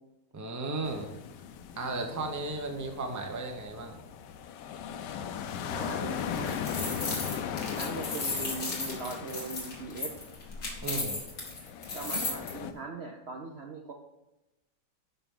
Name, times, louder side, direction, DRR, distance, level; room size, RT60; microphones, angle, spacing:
voice 1, 0.3-1.1 1.8-4.0 10.8-11.2, right 2 dB, 15° right, 3 dB, 0.6 m, -35 dB
sound 1, 0.8-12.7, left 8 dB, 85° left, 1.2 m, -38 dB
voice 2, 5.7-6.6 7.8-10.1 11.9-13.9, right 4 dB, 55° right, 2 dB, 0.7 m, -40 dB
sound 2, 6.2-12.5, left 3 dB, 50° left, 2.3 m, -35 dB
11.0 x 5.7 x 3.8 m, 0.99 s
omnidirectional pair, 1.8 m